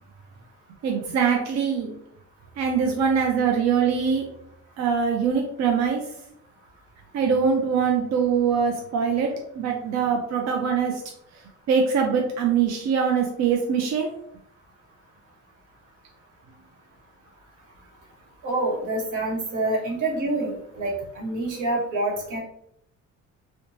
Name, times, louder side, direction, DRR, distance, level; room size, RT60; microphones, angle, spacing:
voice 1, 0.8-1.9 2.6-4.2 4.8-6.0 7.1-11.0 11.7-14.1, right 6 dB, 65° right, 2 dB, 0.5 m, -23 dB
voice 2, 18.4-22.4, right 2 dB, 90° right, -1 dB, 0.9 m, -27 dB
2.9 x 2.2 x 2.6 m, 0.72 s
cardioid pair, 90°, 30 cm